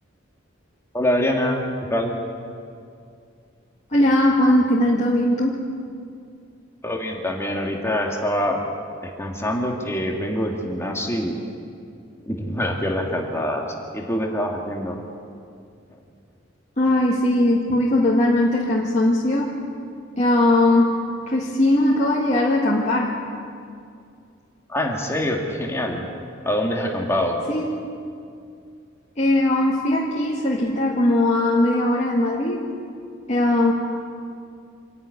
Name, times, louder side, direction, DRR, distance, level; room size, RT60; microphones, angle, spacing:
voice 1, 0.9-2.2 6.8-8.6 9.0-11.4 12.2-13.7 13.9-15.0 24.7-26.0 26.4-27.4, left 1 dB, 15° left, 1 dB, 1.9 m, -25 dB
voice 2, 3.9-5.6 16.8-19.5 20.2-20.9 21.3-23.1 27.5-27.6 29.2-32.6 33.3-33.7, left 1 dB, 35° left, -5 dB, 2.0 m, -19 dB
26.0 x 11.0 x 9.7 m, 2.4 s
head